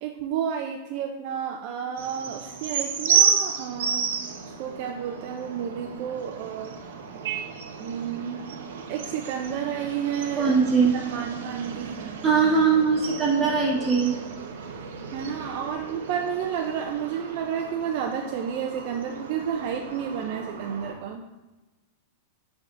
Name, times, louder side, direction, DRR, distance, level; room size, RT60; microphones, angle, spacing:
voice 1, 0.0-6.7 7.8-8.5 8.9-10.6 10.9-12.0 15.1-21.2, right 8 dB, 45° right, 3 dB, 0.4 m, -31 dB
sound 1, 2.0-20.9, right 6 dB, 90° right, 0.8 m, -32 dB
voice 2, 10.4-10.9 12.2-14.1, right 5 dB, 15° right, -4 dB, 1.4 m, -21 dB
10.5 x 3.5 x 2.5 m, 1.1 s
supercardioid pair, 155°, 0 cm